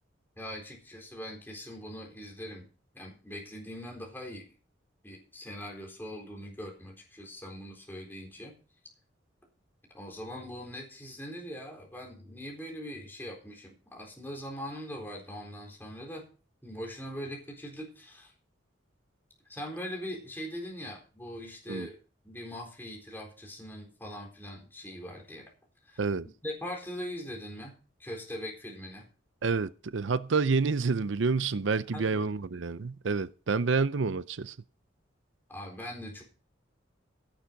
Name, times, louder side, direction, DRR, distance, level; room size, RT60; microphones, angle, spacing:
voice 1, 0.4-2.7 2.9-4.5 5.0-8.5 9.9-16.2 16.6-18.3 19.5-22.0 22.2-25.5 25.8-26.0 26.4-27.7 28.0-29.1 31.9-32.3 35.5-36.2, equal, 10° left, 4.0 m, -41 dB
voice 2, 29.4-34.6, right 4 dB, 75° right, 0.6 m, -28 dB
16.5 x 7.4 x 5.2 m
head